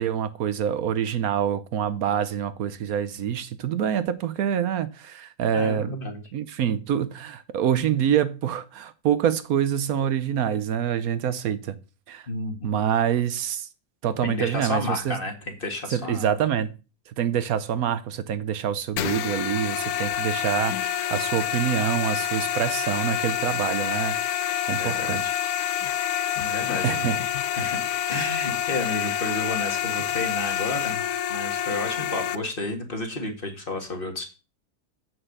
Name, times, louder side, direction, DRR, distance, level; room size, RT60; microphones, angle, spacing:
voice 1, 0.0-6.0 6.3-11.7 12.1-12.3 12.6-13.7 14.0-15.2 15.9-16.7 17.1-25.2 26.8-27.2, right 9 dB, 75° right, 1.2 m, -26 dB
voice 2, 5.5-6.2 12.3-12.8 14.2-16.3 24.8-25.3 26.4-27.1 27.5-27.8 28.1-31.0 31.3-34.2, left 2 dB, 35° left, 2.0 m, -31 dB
sound 1, 19.0-32.4, left 10 dB, 80° left, 1.1 m, -27 dB
7.8 x 6.0 x 6.5 m
omnidirectional pair, 1.6 m